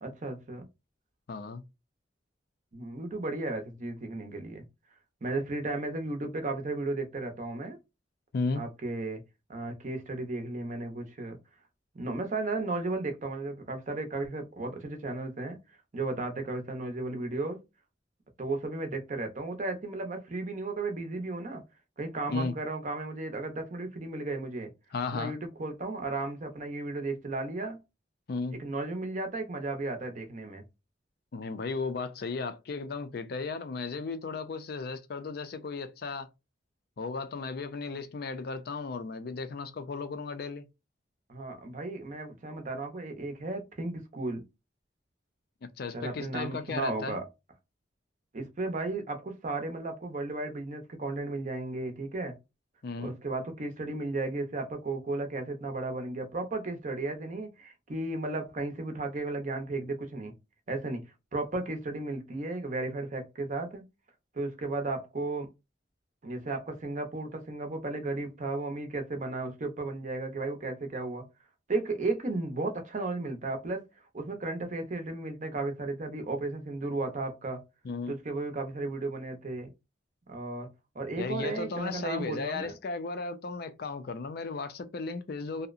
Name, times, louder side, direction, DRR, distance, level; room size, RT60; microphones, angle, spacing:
voice 1, 0.0-0.6 2.7-4.6 5.2-7.8 8.6-9.2 9.5-11.4 11.9-15.6 15.9-17.6 18.4-21.6 22.0-24.7 25.1-27.8 28.5-30.6 41.3-44.4 45.9-47.3 48.3-52.4 53.0-60.3 60.7-63.8 64.3-65.5 66.2-71.3 71.7-73.8 74.1-77.6 78.1-79.7 80.3-80.7 80.9-82.7, right 2 dB, 40° right, 0.6 m, -34 dB
voice 2, 1.3-1.6 8.3-8.7 22.3-22.5 24.9-25.3 28.3-28.6 31.3-36.3 37.0-40.7 45.6-47.2 52.8-53.2 77.8-78.1 81.2-85.7, left 4 dB, 55° left, 0.4 m, -35 dB
2.7 x 2.0 x 2.4 m
head